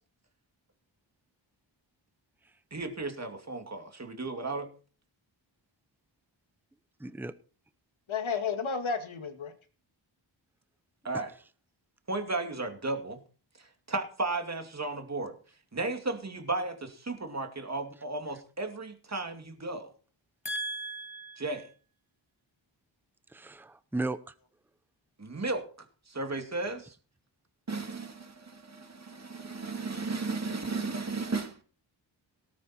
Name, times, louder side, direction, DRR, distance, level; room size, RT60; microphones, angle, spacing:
voice 1, 2.7-4.7 11.0-11.3 12.1-13.2 13.6-15.3 15.7-19.9 21.4-21.7 25.2-26.9 27.7-31.6, right 3 dB, 35° right, 2.4 m, -34 dB
voice 2, 7.0-7.3 20.4-21.6 23.3-24.3, right 3 dB, 5° right, 0.7 m, -36 dB
voice 3, 8.1-9.5 20.4-21.4, left 5 dB, 80° left, 2.2 m, -34 dB
18.0 x 9.3 x 4.3 m
wide cardioid pair, 135°, 47 cm